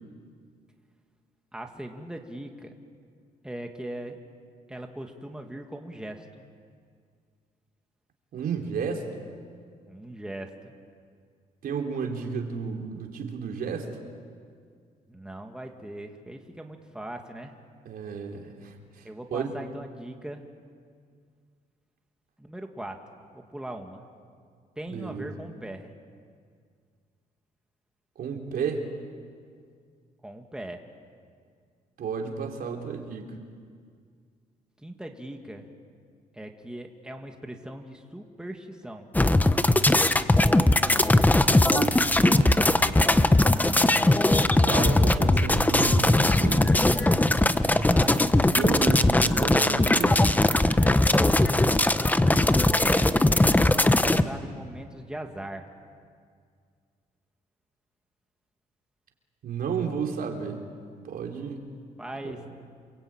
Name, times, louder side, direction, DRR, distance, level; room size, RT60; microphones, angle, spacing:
voice 1, 1.5-2.7 3.4-4.2 4.7-6.4 9.9-10.7 15.1-17.5 19.0-20.5 22.4-23.0 23.3-24.1 24.8-25.9 30.2-30.9 34.8-35.7 36.3-39.1 43.3-44.0 47.6-48.3 50.8-51.8 52.8-55.7 62.0-62.4, right 1 dB, 5° right, 3 dB, 2.2 m, -40 dB
voice 2, 8.3-9.2 11.6-13.9 17.8-18.7 19.3-19.5 24.9-25.3 28.2-28.9 32.0-33.3 41.3-42.8 44.6-46.8 48.5-50.2 59.4-60.6 61.0-61.6 62.2-62.4, right 6 dB, 70° right, 2 dB, 3.8 m, -32 dB
sound 1, 39.1-54.2, left 2 dB, 10° left, 1.0 m, -20 dB
29.0 x 22.0 x 9.0 m, 2.1 s
cardioid pair, 105°, 16 cm